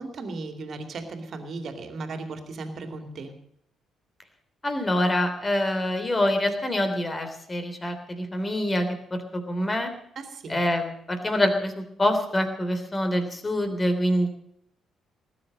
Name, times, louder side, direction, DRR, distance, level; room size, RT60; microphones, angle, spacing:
voice 1, 0.0-3.3 10.2-10.6, right 3 dB, 50° right, 7 dB, 2.6 m, -36 dB
voice 2, 4.6-9.9 10.5-14.3, left 1 dB, 25° left, 7 dB, 3.3 m, -26 dB
19.0 x 9.5 x 6.4 m, 0.71 s
figure-of-eight pair, 40°, 0 cm